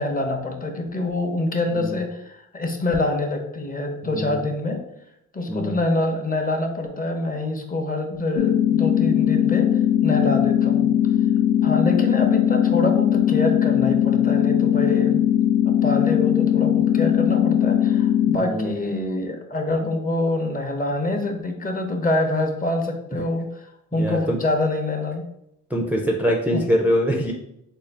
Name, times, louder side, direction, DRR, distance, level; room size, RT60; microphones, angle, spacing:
voice 1, 0.0-4.8 5.3-9.7 10.0-10.9 11.6-15.3 15.7-25.2 26.5-26.6, left 2 dB, 30° left, 4 dB, 0.7 m, -25 dB
voice 2, 4.0-4.4 5.5-5.8 18.4-18.8 23.9-24.4 25.7-27.3, equal, 5° right, -1 dB, 0.4 m, -23 dB
sound 1, 8.4-18.4, left 10 dB, 80° left, 0.5 m, -19 dB
3.8 x 2.3 x 3.3 m, 0.80 s
cardioid pair, 90°, 30 cm